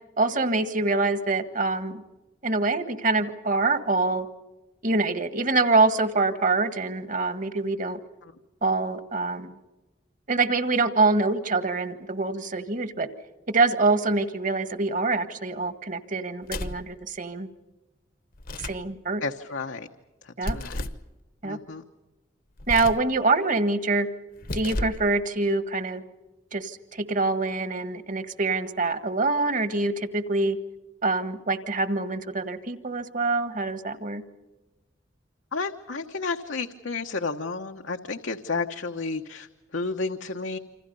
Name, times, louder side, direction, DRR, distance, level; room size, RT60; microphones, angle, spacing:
voice 1, 0.2-2.0 2.4-4.3 4.8-8.0 8.6-9.5 10.3-13.1 13.5-17.5 18.6-19.2 20.4-20.6 21.4-21.6 22.7-24.1 24.5-26.0 26.5-30.6 31.0-34.2, right 3 dB, 45° right, 11 dB, 1.6 m, -25 dB
sound 1, 16.4-16.9 18.3-18.9 20.4-21.1 22.6-23.1 24.3-25.1, left 1 dB, 50° left, 1.1 m, -32 dB
voice 2, 19.2-19.9 20.2-20.9 21.4-21.8 35.5-40.6, left 4 dB, 80° left, 4 dB, 1.2 m, -32 dB
28.0 x 26.5 x 5.5 m, 1.1 s
head